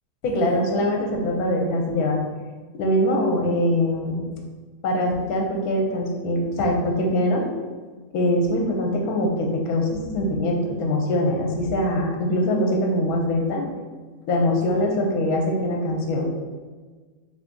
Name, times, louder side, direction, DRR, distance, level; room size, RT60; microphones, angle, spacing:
voice 1, 0.2-2.2 2.7-4.3 4.8-7.5 8.1-13.7 14.3-16.3, left 1 dB, 80° left, 1 dB, 1.1 m, -23 dB
2.8 x 2.7 x 3.5 m, 1.4 s
omnidirectional pair, 1.6 m